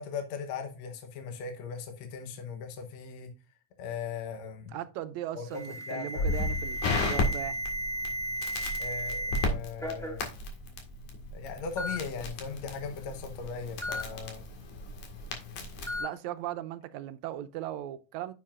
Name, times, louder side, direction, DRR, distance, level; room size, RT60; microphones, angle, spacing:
voice 1, 0.0-3.3 3.8-4.7 5.3-5.4 5.9-6.4 8.8-10.3 11.3-14.5, left 6 dB, 70° left, 2.1 m, -38 dB
voice 2, 4.7-7.6 16.0-18.3, right 12 dB, 80° right, 1.9 m, -38 dB
Alarm, 5.5-9.5 9.8-10.2 11.1-11.2 11.8-12.0 13.8-14.0 15.9-16.1, equal, ahead, 1.0 m, -34 dB
Crackle, 6.2-16.0, left 2 dB, 85° left, 3.3 m, -34 dB
9.7 x 7.4 x 2.5 m
omnidirectional pair, 3.4 m